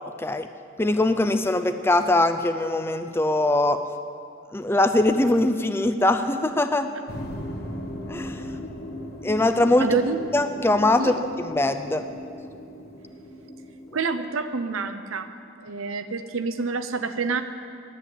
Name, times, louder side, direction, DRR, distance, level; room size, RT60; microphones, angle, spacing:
voice 1, 0.8-3.8 4.5-6.9 8.1-8.4 9.2-9.9 10.3-11.1 11.5-12.0, left 2 dB, 10° left, 9 dB, 0.4 m, -22 dB
sound 1, 7.1-14.0, left 1 dB, 50° left, 1.2 m, -37 dB
voice 2, 9.8-10.2 11.0-11.1 13.9-15.3 15.6-17.4, right 4 dB, 85° right, 10 dB, 0.7 m, -27 dB
11.0 x 7.8 x 9.5 m, 2.5 s
head